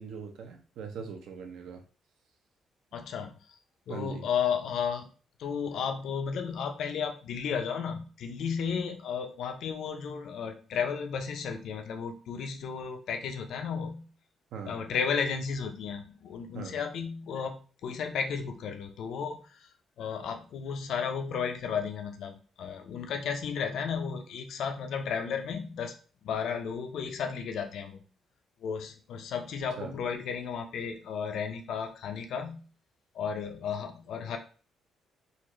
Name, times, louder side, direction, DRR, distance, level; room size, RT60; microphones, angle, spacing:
voice 1, 0.0-1.8 3.9-4.2 14.5-14.7 16.5-16.8 29.8-29.9, right 6 dB, 75° right, 4 dB, 0.7 m, -41 dB
voice 2, 2.9-3.3 3.9-5.1 5.4-14.1 14.6-19.7 20.0-22.3 22.6-25.9 26.2-28.0 28.6-32.6 33.1-34.4, left 6 dB, 60° left, 6 dB, 0.5 m, -33 dB
4.1 x 2.5 x 3.0 m, 0.38 s
cardioid pair, 175°, 0 cm